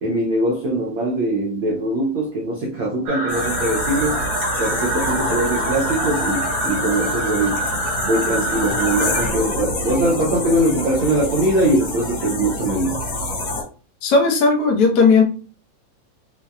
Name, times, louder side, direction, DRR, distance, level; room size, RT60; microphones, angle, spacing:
voice 1, 0.0-4.2 4.6-7.6 8.0-13.0, right 1 dB, 85° right, -1 dB, 1.0 m, -21 dB
sound 1, 3.1-9.3, right 1 dB, 55° right, 2.1 m, -26 dB
sound 2, 3.3-13.6, left 2 dB, 55° left, 1.6 m, -27 dB
voice 2, 14.0-15.2, left 4 dB, 85° left, 0 dB, 0.9 m, -15 dB
5.5 x 2.7 x 2.3 m, 0.36 s
omnidirectional pair, 3.4 m